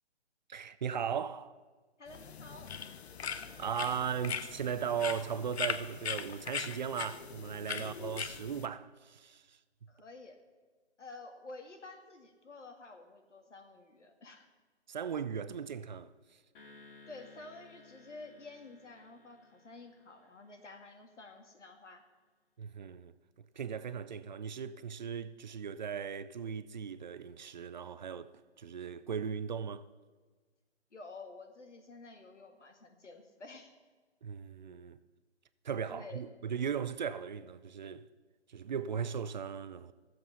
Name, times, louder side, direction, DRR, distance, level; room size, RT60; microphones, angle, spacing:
voice 1, 0.5-1.6 3.2-3.3 3.6-9.6 14.9-16.4 22.6-23.1 23.6-29.9 34.2-35.0 35.6-38.1 38.5-39.9, right 7 dB, 40° right, 0.5 m, -37 dB
voice 2, 2.0-2.7 7.8-7.9 9.9-10.4 11.0-14.5 17.1-22.0 30.9-33.7 35.9-36.2, left 3 dB, 85° left, 2.0 m, -50 dB
sound 1, 2.1-8.7, left 7 dB, 65° left, 0.8 m, -40 dB
sound 2, 16.5-21.0, left 3 dB, 50° left, 2.5 m, -59 dB
14.5 x 7.6 x 5.6 m
hypercardioid pair, 150°, 35 cm